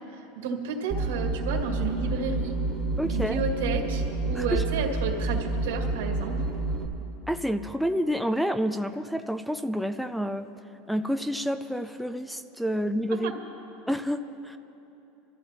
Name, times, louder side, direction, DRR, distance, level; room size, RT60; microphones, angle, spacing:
voice 1, 0.4-2.6 3.0-6.4 13.2-13.3, right 4 dB, 85° right, 2 dB, 2.0 m, -31 dB
sound 1, 0.9-6.8, right 3 dB, 15° right, 1.6 m, -29 dB
voice 2, 3.0-3.4 4.3-4.6 7.3-10.5 10.9-13.3 13.9-14.6, equal, ahead, 11 dB, 0.4 m, -29 dB
26.0 x 14.0 x 2.9 m, 3.0 s
supercardioid pair, 145°, 0 cm